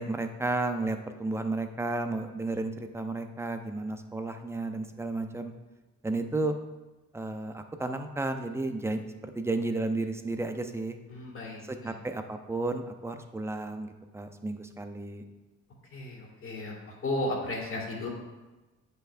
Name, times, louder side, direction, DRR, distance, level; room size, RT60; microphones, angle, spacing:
voice 1, 0.0-5.5 6.0-6.5 7.1-11.0 11.6-15.2, right 2 dB, 10° right, 7 dB, 0.5 m, -33 dB
voice 2, 11.1-11.9 15.9-18.1, left 1 dB, 45° left, -3 dB, 2.1 m, -34 dB
8.2 x 5.3 x 2.5 m, 1.1 s
cardioid pair, 90°, 30 cm